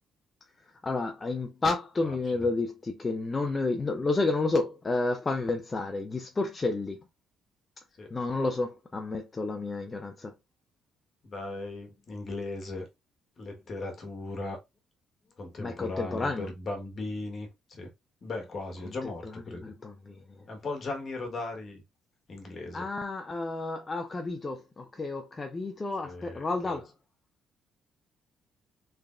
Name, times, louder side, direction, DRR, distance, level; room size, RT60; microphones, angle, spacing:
voice 1, 0.8-7.0 8.1-10.3 15.6-16.5 19.0-19.3 19.6-20.2 22.7-26.9, left 3 dB, 25° left, 0.5 m, -31 dB
voice 2, 2.0-2.5 8.0-8.1 11.2-12.9 13.4-14.6 15.4-17.9 18.2-19.6 20.5-21.8 22.3-22.9 26.0-26.8, left 2 dB, 40° left, 1.3 m, -37 dB
3.4 x 3.3 x 2.5 m
cardioid pair, 100°, 0 cm